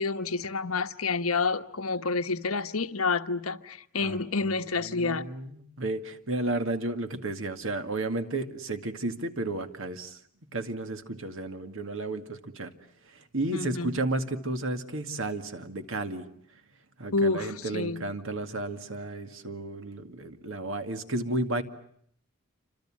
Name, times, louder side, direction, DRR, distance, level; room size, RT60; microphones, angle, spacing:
voice 1, 0.0-5.3 13.5-13.9 17.1-18.0, left 4 dB, 80° left, 1.3 m, -29 dB
voice 2, 4.8-10.2 10.5-12.7 13.1-16.3 17.0-21.6, right 2 dB, 65° right, 2.1 m, -33 dB
28.5 x 25.5 x 7.5 m
head